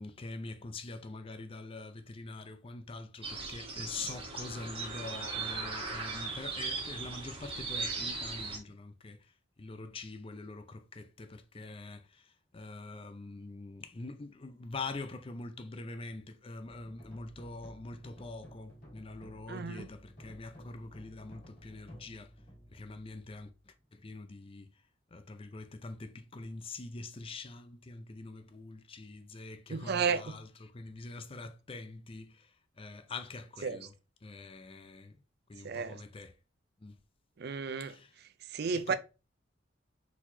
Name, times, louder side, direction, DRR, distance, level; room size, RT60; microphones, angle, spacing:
voice 1, 0.0-9.3 9.6-22.3 22.7-24.7 25.1-32.5 32.8-33.9 34.2-35.2 35.5-36.3 36.8-37.0 37.8-38.1 38.9-39.0, left 3 dB, 30° left, 0.5 m, -44 dB
sound 1, 3.2-8.6, right 4 dB, 30° right, 1.1 m, -38 dB
sound 2, 16.6-23.9, equal, 45° left, 2.0 m, -53 dB
voice 2, 19.5-19.9 29.7-30.4 33.6-33.9 35.6-36.0 37.4-38.0 38.5-38.9, right 5 dB, 55° right, 0.5 m, -33 dB
4.5 x 4.0 x 2.7 m
head